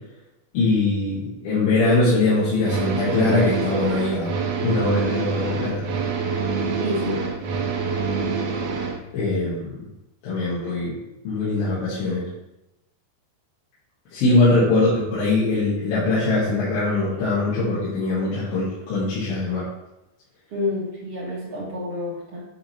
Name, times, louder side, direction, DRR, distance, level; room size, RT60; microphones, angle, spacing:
voice 1, 0.5-4.3 4.6-5.9 9.1-9.8 10.2-10.9 11.3-12.3 14.1-19.7, left 2 dB, 65° left, -10 dB, 3.4 m, -22 dB
sound 1, 2.6-9.0, right 5 dB, 85° right, 1.7 m, -26 dB
voice 2, 6.8-7.2 14.2-14.4 20.5-22.4, left 2 dB, 50° right, -6 dB, 1.9 m, -28 dB
8.9 x 3.8 x 4.3 m, 0.93 s
omnidirectional pair, 4.8 m